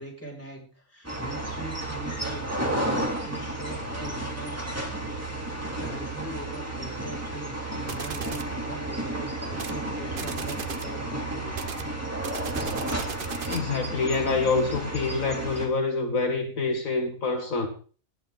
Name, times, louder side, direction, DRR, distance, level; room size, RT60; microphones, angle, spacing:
voice 1, 0.0-2.9 3.2-4.6 4.9-5.4 5.8-11.6, right 1 dB, 10° left, 6.7 m, -41 dB
sound 1, 1.0-15.7, right 1 dB, 10° right, 3.5 m, -32 dB
sound 2, 7.9-8.5 9.5-9.8 10.1-10.9 11.5-13.7, right 6 dB, 45° right, 0.9 m, -36 dB
voice 2, 13.5-17.7, left 3 dB, 65° left, 1.9 m, -26 dB
19.5 x 12.0 x 4.0 m
omnidirectional pair, 1.5 m